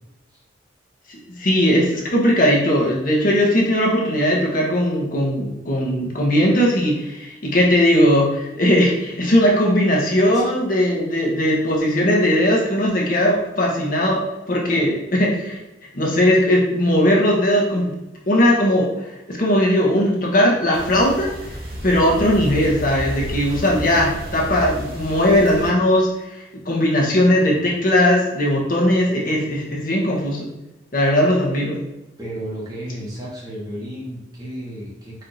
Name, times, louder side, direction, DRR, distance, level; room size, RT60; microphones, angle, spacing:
voice 1, 1.4-14.2 14.5-15.6 15.9-17.9 18.3-21.3 21.8-30.5 30.9-31.8, equal, 45° left, -2 dB, 0.8 m, -18 dB
sound 1, 20.7-25.7, equal, 50° right, 1.0 m, -32 dB
voice 2, 32.2-35.2, equal, 20° right, -6 dB, 1.1 m, -33 dB
4.4 x 2.6 x 3.9 m, 0.95 s
head